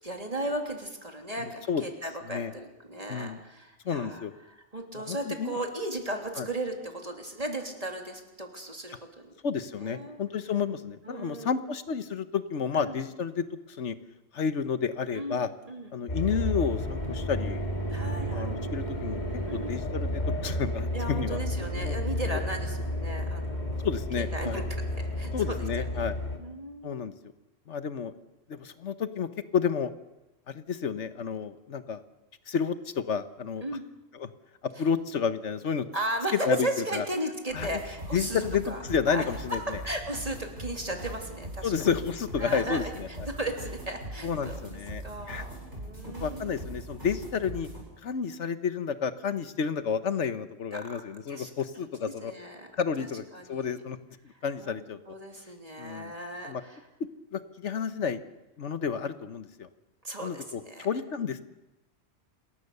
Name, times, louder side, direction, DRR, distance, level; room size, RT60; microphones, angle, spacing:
voice 1, 0.0-9.3 9.8-10.2 11.0-11.6 12.7-13.0 15.1-15.9 17.9-18.6 19.5-19.8 20.9-23.8 24.2-24.8 25.2-26.1 26.4-27.1 33.6-33.9 35.9-38.8 39.1-41.7 42.4-44.6 45.0-46.6 50.7-51.0 51.3-51.5 52.2-52.7 53.0-53.1 53.3-53.7 54.3-54.8 55.1-56.8 60.0-60.9, right 1 dB, 30° right, 3 dB, 3.3 m, -36 dB
voice 2, 1.4-1.8 2.3-2.5 3.1-3.4 3.8-4.3 5.1-5.6 6.4-6.5 9.4-13.9 14.3-15.5 15.9-17.6 18.3-19.2 19.5-21.4 21.8-22.0 22.3-22.4 23.8-24.6 25.3-26.2 26.8-27.1 27.7-28.1 28.5-29.9 30.5-32.0 32.5-33.6 34.2-34.3 34.8-35.9 36.4-36.7 36.9-37.0 37.5-37.8 38.1-39.8 41.6-43.3 44.2-45.4 46.2-47.7 48.0-52.3 52.7-54.0 54.2-55.0 55.8-56.1 56.4-56.6 57.3-58.2 58.6-59.7 60.2-61.4, left 6 dB, 80° left, 11 dB, 1.4 m, -31 dB
sound 1, 16.1-26.4, equal, 40° left, 3.1 m, -32 dB
sound 2, 37.5-47.8, right 1 dB, 75° right, 7.4 m, -41 dB
27.5 x 21.0 x 6.8 m, 0.97 s
omnidirectional pair, 1.2 m